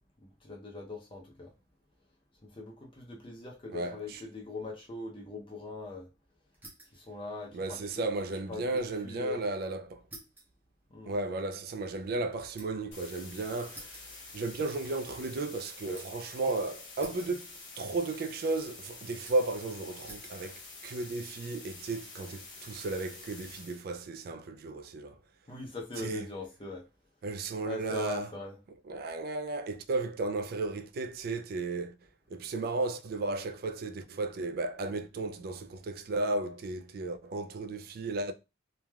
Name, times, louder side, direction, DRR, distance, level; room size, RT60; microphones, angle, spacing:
voice 1, 0.2-1.5 2.4-6.1 6.9-7.8 8.5-9.4 10.9-11.1 25.5-26.8 27.6-28.6, left 3 dB, 25° left, 0.5 m, -41 dB
voice 2, 3.7-4.2 7.5-10.0 11.1-17.5 17.8-25.2 26.0-26.3 27.2-28.3 28.9-31.9 32.3-38.3, right 2 dB, 50° right, 0.3 m, -34 dB
sound 1, 6.5-7.1 7.4-8.9 9.2-9.3 10.1-12.9 13.7-14.9 15.2-16.3 17.0-17.9 18.1-18.7 19.2-19.6 20.0-20.4 21.1-21.5, right 1 dB, 10° right, 0.6 m, -53 dB
sound 2, 12.9-23.8, left 3 dB, 65° left, 1.1 m, -48 dB
3.2 x 2.3 x 2.2 m
head